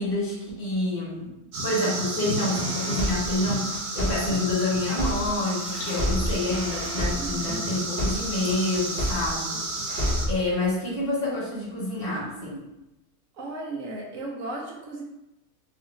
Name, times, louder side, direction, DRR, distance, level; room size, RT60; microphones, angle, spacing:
voice 1, 0.0-1.3 1.6-9.6 9.9-10.0 10.3-12.6, left 2 dB, 40° left, -7 dB, 1.0 m, -28 dB
sound 1, 1.5-10.3, right 2 dB, 85° right, 1.3 m, -32 dB
sound 2, 2.5-5.5 5.9-9.5 9.9-10.5, equal, 40° right, 0.8 m, -30 dB
sound 3, 5.0-9.3 9.6-9.7, left 2 dB, 65° left, 1.0 m, -46 dB
voice 2, 7.1-7.7 9.5-9.9 13.4-15.0, right 2 dB, 65° right, -1 dB, 0.9 m, -36 dB
2.9 x 2.4 x 3.1 m, 0.93 s
omnidirectional pair, 1.7 m